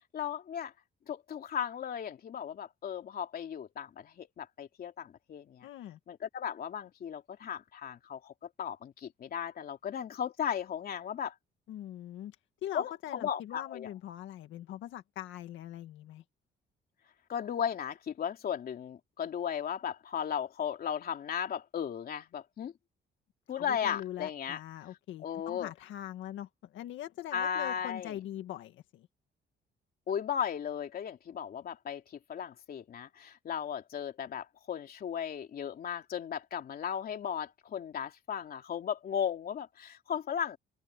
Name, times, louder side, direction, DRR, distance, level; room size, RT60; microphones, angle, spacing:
voice 1, 0.1-0.7 1.1-5.7 6.1-8.3 8.6-11.3 12.7-13.9 17.3-22.7 23.5-24.6 25.2-25.7 27.3-28.2 30.1-32.0 32.3-40.6, left 8 dB, 50° left, 3.1 m, -36 dB
voice 2, 5.6-6.0 11.7-12.4 12.6-16.2 23.6-29.1, left 12 dB, 90° left, 1.8 m, -42 dB
open air
cardioid pair, 135°, 19 cm